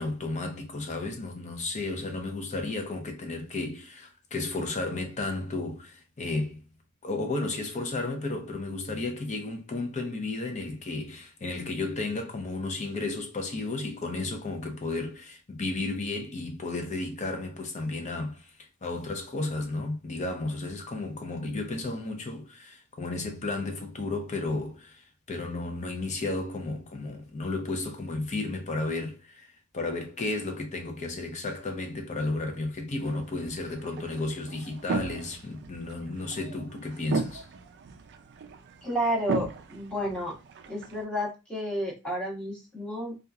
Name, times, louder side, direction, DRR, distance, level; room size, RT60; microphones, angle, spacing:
voice 1, 0.0-6.6 7.0-29.5 29.7-37.5, left 2 dB, 35° left, 0.6 m, -33 dB
sound 1, 33.0-41.1, right 4 dB, 50° right, 0.3 m, -37 dB
voice 2, 38.8-40.4 40.7-43.2, equal, 5° left, 0.9 m, -31 dB
2.8 x 2.4 x 2.3 m
head